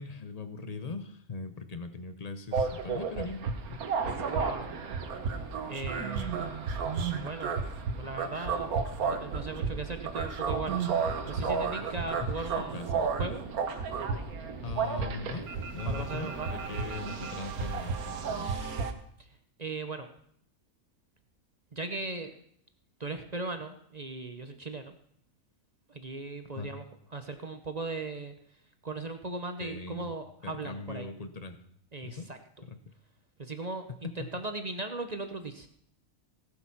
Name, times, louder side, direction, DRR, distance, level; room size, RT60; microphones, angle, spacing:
voice 1, 0.0-3.8 11.3-12.0 12.6-13.1 14.6-18.8 26.6-26.7 29.6-30.1 30.4-31.6 32.0-32.3 32.6-32.8 34.2-34.3, left 4 dB, 30° left, 10 dB, 0.9 m, -41 dB
sound 1, 2.5-18.9, right 5 dB, 85° right, 1.6 m, -32 dB
voice 2, 4.3-4.7 5.7-6.4 7.2-7.5 7.8-10.8 11.3-13.4 15.9-16.6 19.6-20.1 21.7-22.3 23.0-24.9 25.9-26.8 27.1-28.3 28.8-31.1 31.9-32.4 33.4-35.7, right 3 dB, 35° right, 7 dB, 0.8 m, -38 dB
16.5 x 7.9 x 5.9 m, 0.68 s
omnidirectional pair, 1.5 m